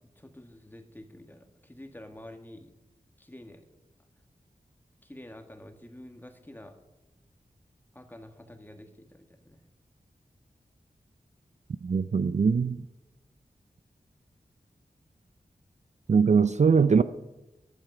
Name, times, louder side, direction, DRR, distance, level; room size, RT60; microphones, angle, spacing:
voice 1, 0.2-2.7 3.2-3.6 5.0-6.8 7.9-9.6, left 1 dB, 15° left, 6 dB, 1.6 m, -48 dB
voice 2, 11.8-12.8 16.1-17.0, right 5 dB, 50° right, 13 dB, 0.4 m, -22 dB
15.5 x 11.0 x 4.9 m, 1.0 s
wide cardioid pair, 70°, 15 cm